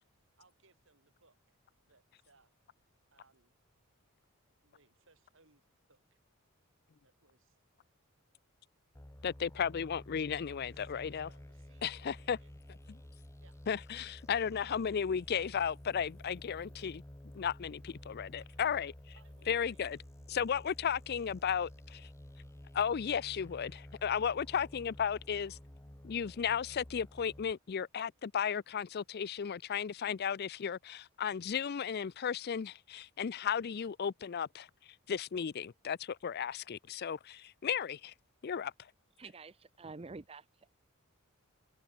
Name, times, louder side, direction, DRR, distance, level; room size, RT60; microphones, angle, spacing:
voice 1, 0.4-1.6 1.8-2.5 3.1-3.6 4.4-6.2 7.0-7.6 10.5-12.5 13.4-13.6 17.9-18.6 19.1-20.0, right 3 dB, 60° right, 7.1 m, -69 dB
sound 1, 8.9-27.5, left 1 dB, 15° left, 0.8 m, -52 dB
voice 2, 9.2-11.3 11.8-12.4 13.7-17.0 17.3-18.9 19.5-20.0 20.3-22.1 22.7-25.6 26.0-34.7 35.1-38.1 38.4-38.7, left 7 dB, 45° left, 0.4 m, -34 dB
voice 3, 39.2-40.7, right 3 dB, 25° right, 0.6 m, -49 dB
open air
head